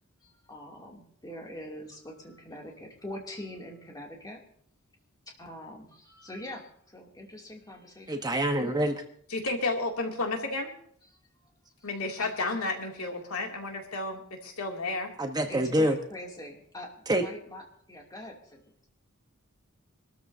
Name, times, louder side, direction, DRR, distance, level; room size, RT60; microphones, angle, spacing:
voice 1, 0.2-4.4 5.3-8.3 11.1-11.2 11.8-11.9 12.2-12.4 15.5-16.9 17.2-17.6 17.9-18.9, left 1 dB, 20° left, -1 dB, 2.7 m, -43 dB
voice 2, 8.1-9.0 15.2-16.0 17.1-17.2, right 1 dB, 20° right, 5 dB, 1.1 m, -26 dB
voice 3, 9.3-10.7 11.8-15.1, left 2 dB, 75° left, 1 dB, 2.6 m, -32 dB
26.0 x 13.5 x 2.8 m, 0.62 s
head